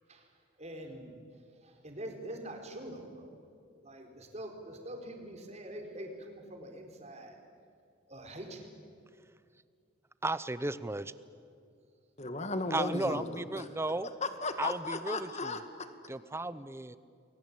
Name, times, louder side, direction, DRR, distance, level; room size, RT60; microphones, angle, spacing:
voice 1, 0.6-1.2 1.6-3.3 3.8-7.4 8.1-8.7, right 1 dB, 35° right, 3 dB, 4.5 m, -44 dB
voice 2, 10.2-11.1 12.7-14.1 14.6-15.6 16.1-17.0, right 2 dB, 15° right, 15 dB, 0.8 m, -35 dB
voice 3, 12.2-13.7 14.2-15.9, left 3 dB, 35° left, 9 dB, 2.0 m, -35 dB
29.5 x 22.0 x 8.7 m, 2.3 s
head